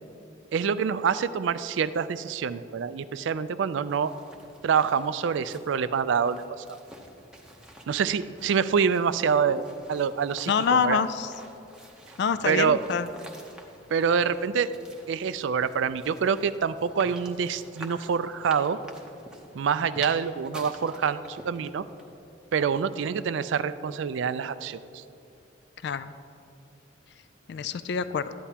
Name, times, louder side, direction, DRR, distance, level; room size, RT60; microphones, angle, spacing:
voice 1, 0.5-4.1 4.6-6.8 7.9-11.0 12.5-12.8 13.9-14.7 15.1-18.8 19.5-21.8 22.5-25.0, right 6 dB, 65° right, 13 dB, 0.3 m, -26 dB
sound 1, 3.6-22.2, right 1 dB, 5° right, 0.7 m, -49 dB
voice 2, 10.5-11.3 12.2-13.1 25.8-26.1 27.5-28.3, left 6 dB, 55° left, 13 dB, 0.3 m, -26 dB
13.5 x 10.0 x 2.8 m, 2.7 s
head